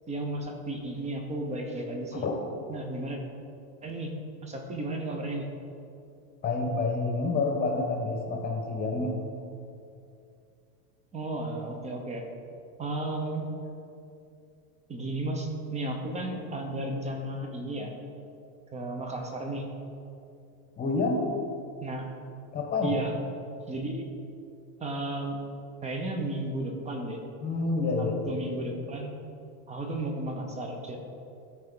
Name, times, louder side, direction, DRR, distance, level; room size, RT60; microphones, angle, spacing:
voice 1, 0.1-2.3 2.7-3.2 3.8-4.1 4.4-5.5 11.1-12.3 12.8-13.5 14.9-17.9 18.7-19.7 21.8-22.1 22.8-23.1 23.7-24.0 24.8-25.4 25.8-27.2 28.0-29.1 29.7-31.0, right 1 dB, 15° right, 3 dB, 0.8 m, -33 dB
voice 2, 6.4-9.2 20.8-21.3 22.5-22.9 27.4-28.4, left 3 dB, 20° left, 2 dB, 1.1 m, -28 dB
13.5 x 4.5 x 3.8 m, 2.6 s
supercardioid pair, 145°, 45 cm